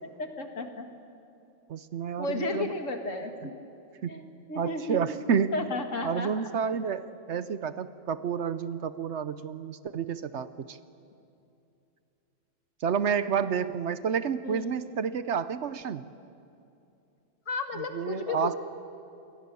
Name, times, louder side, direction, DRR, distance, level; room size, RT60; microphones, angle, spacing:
voice 1, 0.0-0.9 2.2-3.6 4.1-4.2 4.5-5.2 5.5-6.4 14.4-14.8 17.5-18.5, left 2 dB, 70° left, 5 dB, 2.3 m, -33 dB
voice 2, 1.7-2.7 4.0-4.2 4.6-5.6 6.0-10.8 12.8-16.1 17.9-18.5, right 7 dB, 65° right, 14 dB, 1.0 m, -30 dB
27.5 x 22.5 x 6.9 m, 2.7 s
omnidirectional pair, 1.4 m